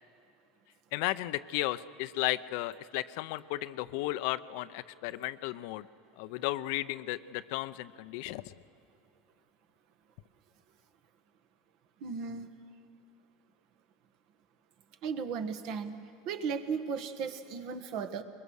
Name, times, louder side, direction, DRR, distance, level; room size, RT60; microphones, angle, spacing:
voice 1, 0.9-5.9 6.2-8.5, left 17 dB, 70° left, 15 dB, 0.6 m, -34 dB
voice 2, 12.0-12.5 15.0-16.0 16.2-18.2, right 6 dB, 60° right, 9 dB, 1.5 m, -35 dB
22.0 x 21.5 x 6.4 m, 2.5 s
supercardioid pair, 105°, 0 cm